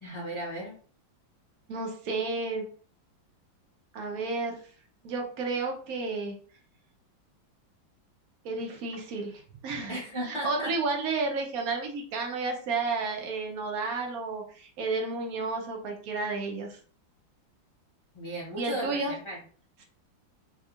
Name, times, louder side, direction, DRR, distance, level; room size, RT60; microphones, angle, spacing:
voice 1, 0.0-0.7 9.9-10.7 18.1-19.4, right 1 dB, 40° left, -5 dB, 0.4 m, -35 dB
voice 2, 1.7-2.6 3.9-4.6 5.0-6.4 8.4-16.8 18.6-19.1, right 3 dB, 65° right, 3 dB, 0.9 m, -32 dB
3.5 x 3.1 x 2.4 m, 0.44 s
omnidirectional pair, 2.2 m